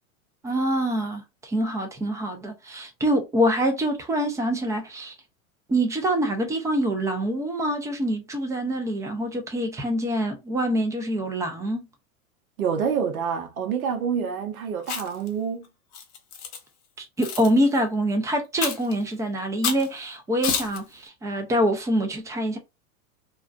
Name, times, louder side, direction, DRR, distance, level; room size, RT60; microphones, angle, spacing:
voice 1, 0.4-5.1 5.7-11.9 17.0-22.6, equal, 5° right, 0.5 m, -25 dB
voice 2, 12.6-15.7, right 7 dB, 75° right, 0.8 m, -27 dB
Chewing mastication, 14.8-15.3 15.9-16.6 17.2-17.5 18.6-18.9 19.6-19.9 20.4-20.8, left 6 dB, 65° left, 1.0 m, -29 dB
2.5 x 2.2 x 2.4 m
hypercardioid pair, 100°, 43 cm